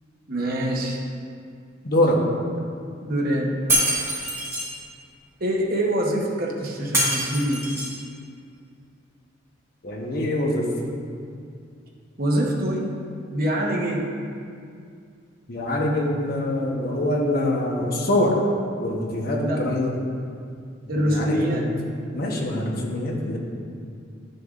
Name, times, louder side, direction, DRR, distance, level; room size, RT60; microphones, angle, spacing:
voice 1, 0.3-1.0 3.0-3.5 5.4-7.7 12.2-12.9 13.3-14.1 19.4-19.7 20.9-21.7, right 1 dB, 50° right, -2 dB, 1.0 m, -24 dB
voice 2, 1.8-2.2 9.8-10.7 15.5-18.4 18.8-19.9 21.0-21.6 22.1-23.4, left 1 dB, 50° left, -1 dB, 1.1 m, -24 dB
Shatter, 3.7-4.7 6.9-8.0, right 1 dB, 15° right, 1.7 m, -24 dB
10.5 x 6.7 x 2.5 m, 2.3 s
head